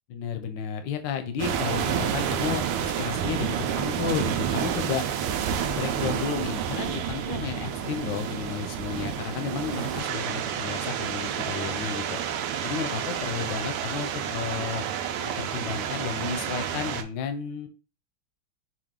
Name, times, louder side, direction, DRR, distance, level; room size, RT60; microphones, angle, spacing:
voice 1, 0.1-5.0 5.6-12.2 12.6-14.8 15.2-17.7, left 7 dB, 70° left, 8 dB, 1.1 m, -32 dB
sound 1, 1.4-17.0, right 8 dB, 85° right, 1.5 m, -29 dB
4.8 x 2.4 x 3.6 m, 0.35 s
omnidirectional pair, 2.4 m